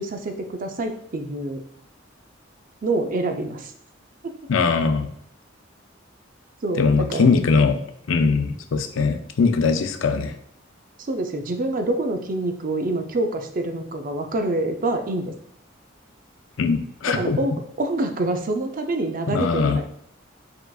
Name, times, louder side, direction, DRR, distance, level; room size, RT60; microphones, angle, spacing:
voice 1, 0.0-1.6 2.8-3.7 6.6-7.3 11.0-15.3 17.1-19.9, right 2 dB, 45° right, 5 dB, 0.5 m, -26 dB
voice 2, 4.5-5.1 6.8-7.8 8.1-10.3 16.6-17.4 19.3-19.8, left 4 dB, 85° left, 8 dB, 0.5 m, -21 dB
4.7 x 3.7 x 2.3 m, 0.70 s
head